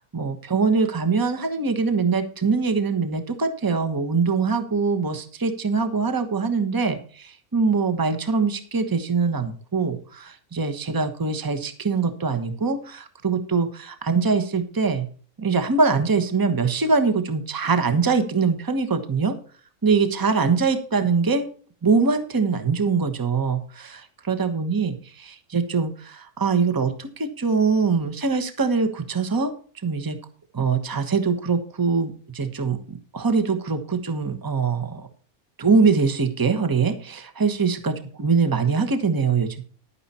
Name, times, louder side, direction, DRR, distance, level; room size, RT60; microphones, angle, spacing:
voice 1, 0.0-15.1 15.4-19.3 19.8-21.5 21.8-29.5 29.8-30.2 30.5-35.1 35.6-39.6, right 4 dB, 15° right, 8 dB, 1.1 m, -23 dB
11.0 x 9.8 x 4.3 m, 0.42 s
omnidirectional pair, 1.5 m